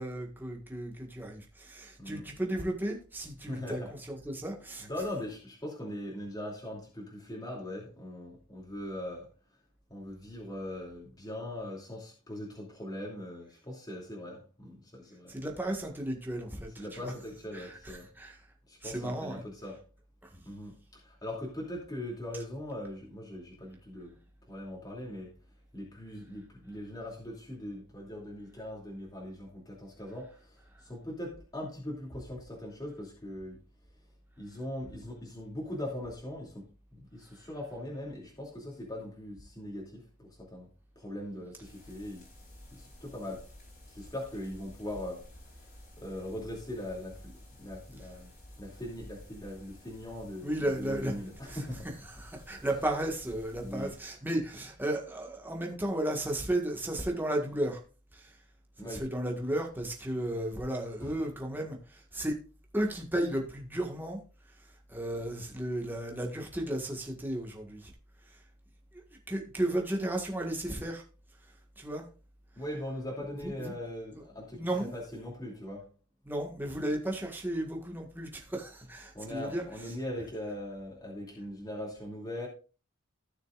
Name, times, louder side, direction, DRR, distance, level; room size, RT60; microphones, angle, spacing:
voice 1, 0.0-3.8 4.1-4.9 15.3-17.1 17.5-18.3 18.8-19.4 20.3-20.4 50.4-51.1 51.4-51.6 52.1-57.8 58.1-58.3 58.9-62.3 62.7-64.2 64.9-67.9 69.3-71.0 71.8-72.0 73.4-73.7 74.5-74.9 76.2-79.6, right 1 dB, 10° right, 1.6 m, -34 dB
voice 2, 3.4-3.9 4.8-9.3 9.9-15.3 16.8-18.1 18.7-19.8 20.4-24.2 24.5-25.3 25.7-33.6 34.4-36.7 36.9-40.7 41.0-42.2 42.7-43.5 43.9-45.3 46.0-47.3 47.6-48.3 48.6-51.9 52.6-52.7 53.6-53.9 58.8-59.1 61.0-61.1 72.6-75.9 79.1-82.5, left 1 dB, 20° left, 2.7 m, -40 dB
sound 1, 41.6-54.0, left 1 dB, 45° left, 3.5 m, -52 dB
16.0 x 6.6 x 2.5 m
head